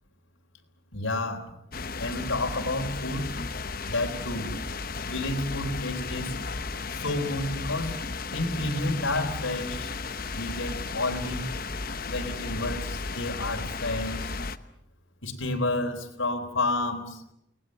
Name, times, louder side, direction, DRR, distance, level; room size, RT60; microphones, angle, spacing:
voice 1, 0.9-1.5 2.0-3.3 3.9-4.5 5.1-6.3 6.9-8.0 8.3-9.9 10.3-11.5 12.1-14.3 15.2-17.2, left 2 dB, 90° left, 3 dB, 3.9 m, -30 dB
sound 1, 1.7-14.6, left 4 dB, 45° left, 1.0 m, -34 dB
29.5 x 19.5 x 7.8 m, 0.80 s
head